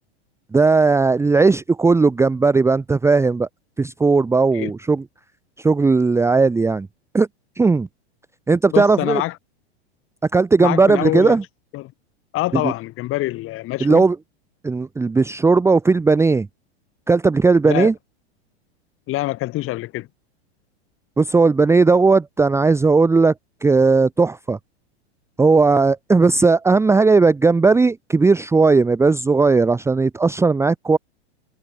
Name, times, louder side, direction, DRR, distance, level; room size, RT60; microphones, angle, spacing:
voice 1, 0.5-3.5 3.8-5.0 5.6-6.9 7.1-7.3 7.6-7.9 8.5-9.2 10.3-11.4 12.6-12.7 13.8-14.2 14.6-16.5 17.1-17.9 21.2-23.3 23.6-24.6 25.4-31.0, right 4 dB, 10° right, 1.0 m, -16 dB
voice 2, 8.7-9.4 10.6-11.4 11.7-11.9 12.3-14.0 17.7-17.9 19.1-20.1, left 17 dB, 40° left, 6.6 m, -25 dB
hypercardioid pair, 120°, 33 cm